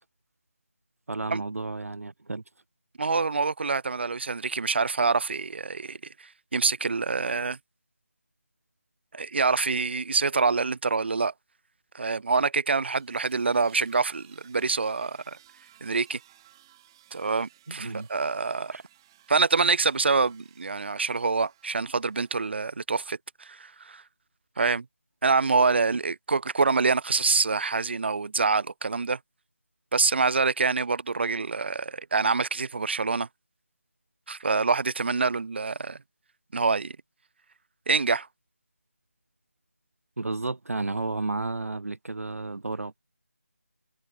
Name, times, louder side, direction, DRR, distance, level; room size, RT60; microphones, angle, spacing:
voice 1, 1.1-2.4 17.7-18.1 18.7-18.8 40.2-43.0, right 2 dB, 75° right, 0.9 m, -32 dB
voice 2, 3.0-7.6 9.1-11.3 11.9-15.4 15.8-16.2 17.1-18.7 19.3-24.0 24.6-24.8 25.2-29.2 29.9-33.3 34.3-36.0 36.5-37.0 37.9-38.3, right 4 dB, 45° right, 0.9 m, -26 dB
sound 1, 12.9-22.5, right 13 dB, 15° right, 2.9 m, -59 dB
figure-of-eight pair, 165°, 8 cm